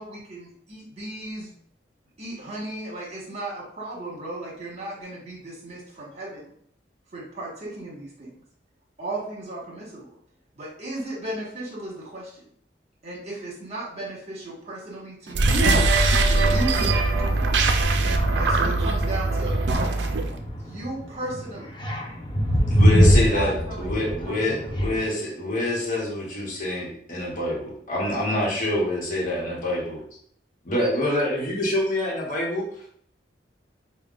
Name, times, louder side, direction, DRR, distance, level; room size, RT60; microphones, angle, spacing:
voice 1, 0.0-1.5 2.2-6.5 7.1-8.3 9.0-10.1 10.5-12.5 13.0-15.9 16.3-17.5 18.3-19.6 20.6-21.7 23.0-24.8, right 1 dB, 40° right, -4 dB, 1.5 m, -35 dB
sound 1, 15.3-20.3, right 2 dB, 70° right, 0.4 m, -21 dB
voice 2, 17.8-18.3 20.0-20.2 21.8-23.1, equal, 25° left, 0 dB, 0.7 m, -20 dB
voice 3, 22.7-30.0 30.6-32.7, left 1 dB, 50° left, -3 dB, 1.0 m, -26 dB
5.3 x 2.2 x 2.4 m, 0.64 s
head